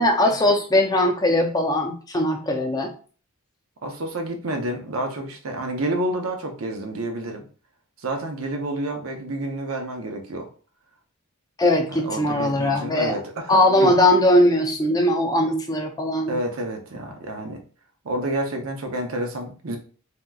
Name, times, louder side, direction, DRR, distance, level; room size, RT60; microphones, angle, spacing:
voice 1, 0.0-2.9 11.6-13.2 13.5-16.3, left 1 dB, 20° left, 2 dB, 0.5 m, -20 dB
voice 2, 3.8-7.4 8.0-10.5 11.9-13.9 16.3-17.6 18.0-19.8, right 1 dB, 75° right, 3 dB, 0.7 m, -29 dB
3.4 x 2.9 x 2.3 m, 0.40 s
head